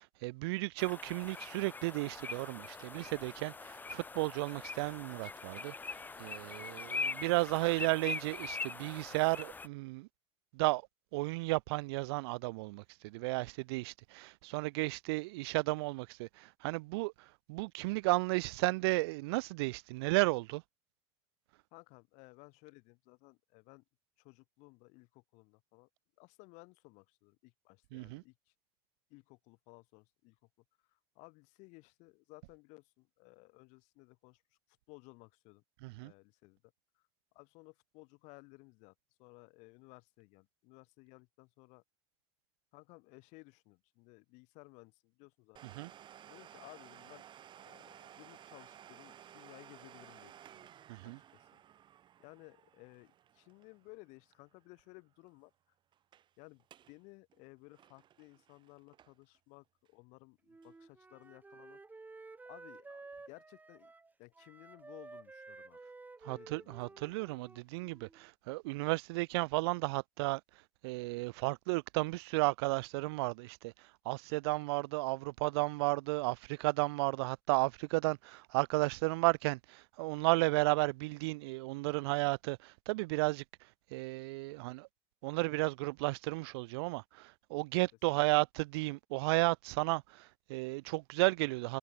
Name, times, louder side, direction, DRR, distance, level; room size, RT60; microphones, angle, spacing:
voice 1, 0.0-5.7 6.2-10.1 10.5-10.8 11.1-20.6 27.9-28.2 35.8-36.1 45.8-45.9 50.9-51.2 66.2-70.4 70.8-83.4 83.9-84.9 85.2-91.8, right 23 dB, 80° right, 1.4 m, -33 dB
sound 1, 0.8-9.7, left 4 dB, 15° left, 1.0 m, -42 dB
voice 2, 6.1-7.0 21.7-23.8 24.2-25.9 26.2-28.5 29.1-30.4 30.9-34.4 34.9-35.6 36.0-36.6 37.0-37.1 37.3-38.9 39.2-41.8 42.7-45.6 46.3-47.2 47.5-50.7 51.0-51.6 52.2-55.5 56.4-61.8 62.5-63.9 64.2-65.8 66.3-67.2, left 27 dB, 65° left, 7.1 m, -58 dB
Domestic sounds home sounds, 45.6-55.0 55.2-55.3 55.9-56.3 56.6-57.0 57.3-59.4 59.9-60.0 60.6-60.7, right 10 dB, 35° right, 2.6 m, -57 dB
Wind instrument woodwind instrument, 60.5-68.2, right 3 dB, 15° right, 7.6 m, -53 dB
supercardioid pair, 125°, 13 cm